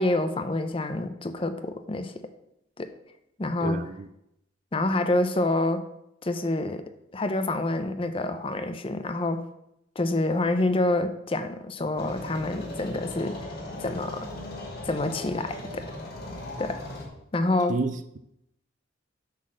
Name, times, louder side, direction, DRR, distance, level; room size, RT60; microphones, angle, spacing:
voice 1, 0.0-2.1 2.8-2.9 3.4-3.8 4.7-5.8 6.2-6.8 7.1-9.4 10.0-13.5 13.8-14.3 14.8-15.8 16.6-16.8 17.3-17.8, left 2 dB, 30° left, 9 dB, 0.6 m, -27 dB
voice 2, 3.6-4.1 17.7-18.2, right 3 dB, 40° right, 12 dB, 0.4 m, -30 dB
sound 1, 12.0-17.1, left 1 dB, 55° left, 2.2 m, -38 dB
8.3 x 4.1 x 6.3 m, 0.80 s
head